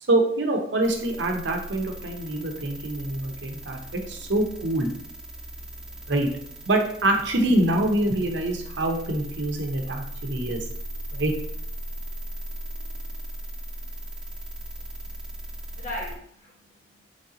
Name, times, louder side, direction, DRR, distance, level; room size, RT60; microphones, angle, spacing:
voice 1, 0.1-4.9 6.1-6.3 6.7-10.6 11.1-11.3, right 1 dB, 75° right, 3 dB, 0.7 m, -25 dB
sound 1, 0.8-16.1, right 1 dB, 5° right, 0.4 m, -38 dB
voice 2, 14.6-17.0, left 1 dB, 45° left, -4 dB, 1.2 m, -41 dB
3.3 x 2.7 x 3.8 m, 0.65 s
head